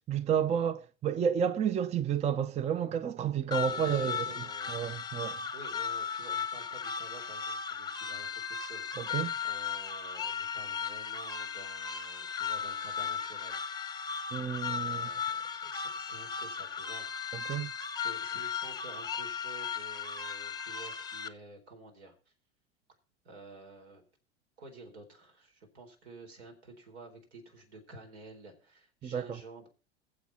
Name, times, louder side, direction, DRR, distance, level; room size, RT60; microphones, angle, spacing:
voice 1, 0.1-4.3 4.7-5.4 9.0-9.3 14.3-15.1 17.3-17.7 29.0-29.3, right 8 dB, 20° right, 0.5 m, -31 dB
sound 1, 3.5-21.3, left 6 dB, 10° left, 0.9 m, -36 dB
voice 2, 3.7-4.8 5.5-13.6 13.9-14.0 14.4-17.4 17.9-22.1 23.2-24.0 24.6-29.7, right 2 dB, 75° right, 4.3 m, -51 dB
21.5 x 7.6 x 4.1 m
hypercardioid pair, 90°, 33 cm